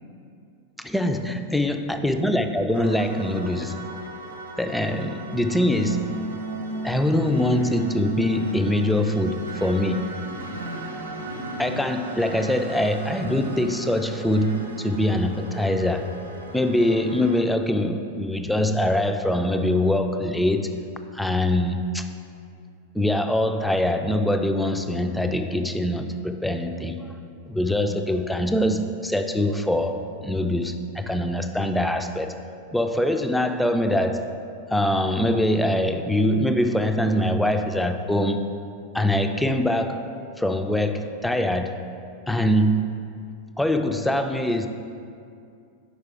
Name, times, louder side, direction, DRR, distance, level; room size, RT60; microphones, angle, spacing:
voice 1, 0.8-3.8 4.6-6.1 6.8-10.1 11.6-16.1 16.5-20.7 21.1-22.1 22.9-27.1 27.5-32.3 32.7-34.3 34.7-38.5 38.9-40.1 40.4-41.8 42.3-42.9 43.6-44.7, left 1 dB, 5° left, 7 dB, 0.3 m, -23 dB
sound 1, 2.7-17.4, right 2 dB, 75° right, 0.7 m, -37 dB
Human voice, 7.2-7.9 8.2-8.7 9.2-9.9 10.2-10.9 11.2-11.9 12.2-12.6 13.2-13.8 14.2-14.7, right 1 dB, 85° left, 0.6 m, -38 dB
5.6 x 4.7 x 4.6 m, 2.5 s
figure-of-eight pair, 90°, 0 cm